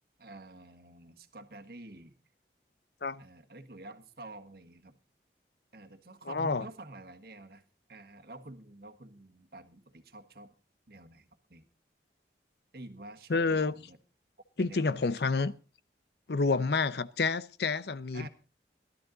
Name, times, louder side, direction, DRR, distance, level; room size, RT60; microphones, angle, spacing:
voice 1, 0.2-2.2 3.2-5.0 5.7-7.6 7.9-10.5 10.9-11.7 12.7-14.0 14.6-15.5 16.5-16.8 18.1-18.3, right 2 dB, 55° right, 1.5 m, -49 dB
voice 2, 6.3-6.6 13.3-13.7 14.6-15.5 16.3-18.3, left 4 dB, 65° left, 0.7 m, -29 dB
17.5 x 12.5 x 3.9 m
head